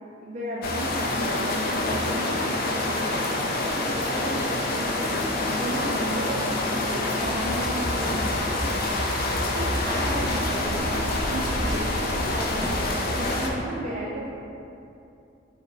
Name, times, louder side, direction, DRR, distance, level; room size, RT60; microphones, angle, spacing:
voice 1, 0.0-5.1 5.6-9.3 9.6-14.3, right 1 dB, 40° right, -7 dB, 0.4 m, -34 dB
sound 1, 0.6-13.5, left 2 dB, 50° left, 0.4 m, -27 dB
sound 2, 4.6-13.3, equal, 85° left, 1.0 m, -42 dB
sound 3, 7.2-13.5, equal, 5° left, 1.1 m, -33 dB
4.5 x 2.8 x 2.4 m, 2.7 s
head